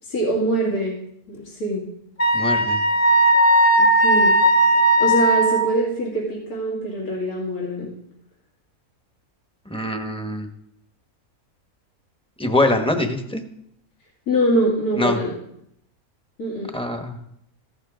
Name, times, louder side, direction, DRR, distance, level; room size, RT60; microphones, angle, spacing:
voice 1, 0.0-1.0 1.3-1.8 3.8-4.4 5.0-7.9 14.3-15.3 16.4-16.7, right 1 dB, 80° left, -6 dB, 3.0 m, -23 dB
Wind instrument woodwind instrument, 2.2-5.7, right 1 dB, 55° left, 1.8 m, -16 dB
voice 2, 2.3-2.8 9.7-10.5 12.4-13.4 15.0-15.2 16.7-17.2, left 1 dB, 5° left, 5 dB, 1.0 m, -23 dB
15.0 x 12.0 x 3.9 m, 0.76 s
omnidirectional pair, 1.5 m